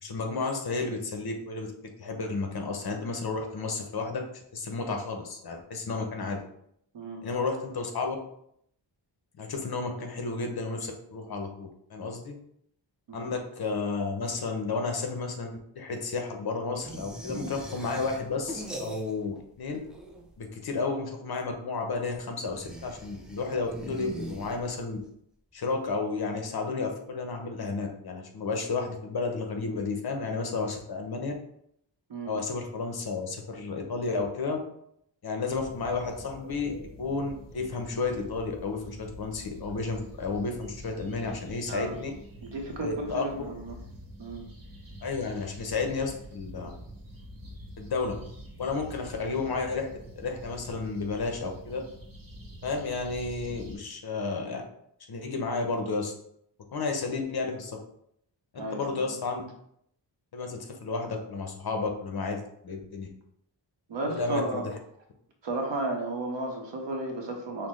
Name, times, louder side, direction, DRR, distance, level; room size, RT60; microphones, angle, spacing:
voice 1, 0.0-4.2 4.5-6.4 7.2-8.2 9.4-12.3 13.1-19.8 20.4-25.0 25.5-31.3 32.3-34.6 35.2-42.1 42.8-43.2 45.0-46.7 47.8-48.1 48.6-49.9 50.2-51.8 52.6-54.6 55.1-56.1 56.7-57.8 58.7-59.5 60.3-63.1 64.1-64.6, left 4 dB, 55° left, 3 dB, 0.8 m, -32 dB
sound 1, 16.8-19.4 19.7-20.5 22.5-25.0, right 1 dB, ahead, 0.3 m, -41 dB
sound 2, 35.5-53.8, equal, 50° right, 1.0 m, -46 dB
voice 2, 42.4-43.8 44.2-44.4 58.6-59.2 63.9-64.6 65.4-67.7, right 2 dB, 75° right, 2 dB, 0.9 m, -33 dB
5.8 x 2.1 x 3.1 m, 0.72 s
wide cardioid pair, 120°, 45 cm